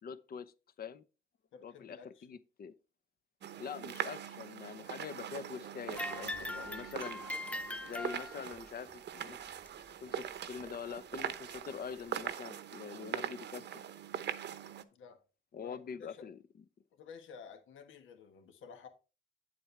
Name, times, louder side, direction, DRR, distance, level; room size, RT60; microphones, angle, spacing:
voice 1, 0.0-1.0 1.6-2.7 3.6-7.2 7.8-9.4 10.0-13.8 15.5-16.4, left 6 dB, 50° left, 0.8 m, -44 dB
voice 2, 1.5-2.3 14.9-15.2 15.6-16.3 16.9-18.9, left 6 dB, 75° left, 1.5 m, -52 dB
sound 1, 3.4-14.8, right 9 dB, 60° right, 0.8 m, -42 dB
sound 2, 5.9-8.7 9.7-9.8 10.6-10.7 11.6-11.7, left 2 dB, 5° left, 0.3 m, -41 dB
8.8 x 7.7 x 3.3 m
cardioid pair, 90°, 20 cm